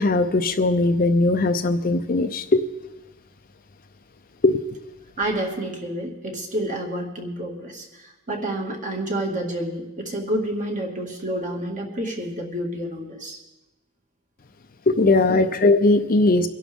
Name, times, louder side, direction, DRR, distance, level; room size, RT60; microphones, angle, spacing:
voice 1, 0.0-2.6 4.4-4.6 14.9-16.5, left 2 dB, 40° left, 8 dB, 0.6 m, -19 dB
voice 2, 5.2-13.4 15.2-15.4, right 1 dB, 35° right, 1 dB, 2.0 m, -29 dB
23.5 x 11.0 x 3.6 m, 1.0 s
head